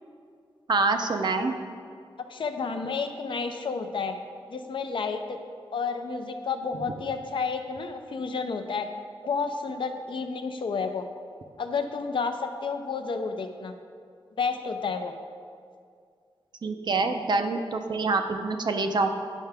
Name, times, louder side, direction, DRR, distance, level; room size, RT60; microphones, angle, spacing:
voice 1, 0.7-1.5 16.6-19.1, right 3 dB, 50° right, 6 dB, 0.5 m, -26 dB
voice 2, 2.2-4.2 4.5-5.4 5.7-8.9 9.3-11.0 11.6-13.7 14.4-15.1, left 5 dB, 60° left, 6 dB, 0.5 m, -31 dB
9.0 x 5.6 x 3.4 m, 2.2 s
wide cardioid pair, 120°, 10 cm